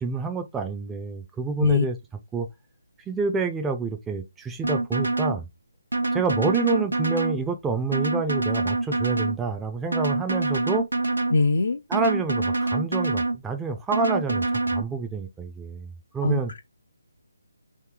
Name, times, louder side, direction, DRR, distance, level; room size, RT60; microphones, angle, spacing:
voice 1, 0.0-2.0 2.3-2.5 3.1-5.5 6.1-10.9 11.9-16.5, right 4 dB, 10° right, 0.4 m, -28 dB
sound 1, 4.6-5.4 5.9-7.4 7.9-9.4 9.9-11.4 11.9-13.4 13.9-14.8, right 2 dB, 85° right, 0.8 m, -25 dB
voice 2, 11.3-11.8 16.2-16.6, left 3 dB, 65° left, 0.4 m, -22 dB
3.0 x 2.7 x 3.7 m
figure-of-eight pair, 155°, 0 cm